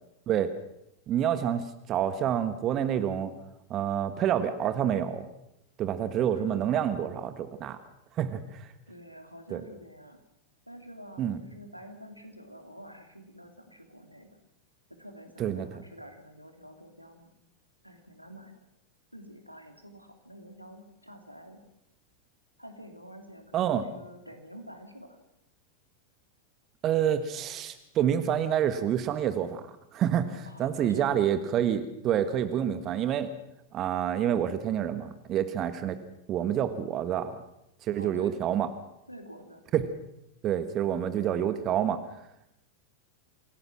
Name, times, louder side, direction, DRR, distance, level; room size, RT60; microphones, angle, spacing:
voice 1, 1.1-3.3 3.7-5.3 5.8-7.8 8.2-8.7 9.5-9.6 11.2-11.4 15.4-15.7 23.5-23.8 26.8-29.6 29.9-33.3 33.7-36.0 36.3-37.3 37.8-38.7 39.7-39.8 40.4-42.0, right 9 dB, 30° right, 11 dB, 1.4 m, -28 dB
voice 2, 8.9-10.2 10.7-14.4 14.9-17.3 17.8-18.7 19.1-21.7 22.6-25.2 30.4-31.1 38.0-38.7 39.1-39.6, equal, 90° right, 5 dB, 2.8 m, -48 dB
27.0 x 17.0 x 6.1 m, 0.80 s
figure-of-eight pair, 90°, 0 cm